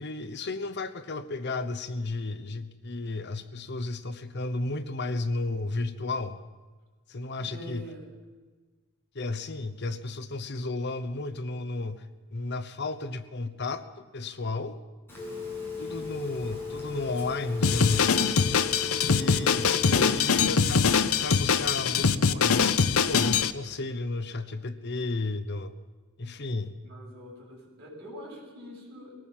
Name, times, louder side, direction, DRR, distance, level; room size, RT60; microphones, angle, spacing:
voice 1, 0.0-6.4 7.1-7.9 9.1-14.8 15.8-18.3 19.0-25.7 26.2-26.8, left 2 dB, 50° left, 11 dB, 1.0 m, -33 dB
voice 2, 7.3-8.0 26.8-29.1, equal, 50° right, -3 dB, 7.3 m, -44 dB
Telephone, 15.1-20.3, left 4 dB, 10° left, 6.8 m, -37 dB
Drum kit, 17.6-23.5, left 6 dB, 85° left, 0.8 m, -23 dB
21.0 x 18.5 x 7.5 m, 1.3 s
head